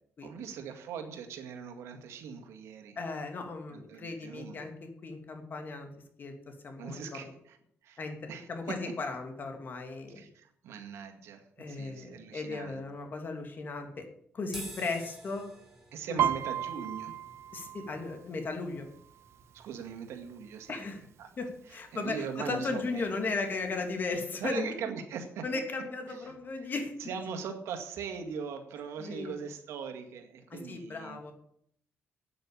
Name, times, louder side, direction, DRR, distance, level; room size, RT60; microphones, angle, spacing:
voice 1, 0.2-3.0 3.7-4.6 6.8-7.6 7.8-8.0 8.3-8.8 10.2-12.8 15.9-17.2 19.5-20.8 21.2-21.3 21.9-23.1 24.4-25.4 26.1-26.3 27.0-31.3, right 6 dB, 90° right, 5 dB, 2.0 m, -40 dB
voice 2, 3.0-5.9 6.2-7.3 8.0-10.3 11.6-14.1 14.3-15.4 16.1-16.2 17.5-18.9 20.7-21.0 21.4-24.7 25.4-26.9 29.0-29.3 30.5-31.3, left 3 dB, 45° left, 4 dB, 2.8 m, -36 dB
sound 1, 14.5-21.0, right 1 dB, 5° right, 3.3 m, -51 dB
Piano, 16.2-19.8 20.2-20.6 20.9-21.6 22.2-22.3 22.5-23.5 23.9-24.0, right 10 dB, 70° right, 0.4 m, -34 dB
9.0 x 8.8 x 8.8 m, 0.70 s
cardioid pair, 100°, 5 cm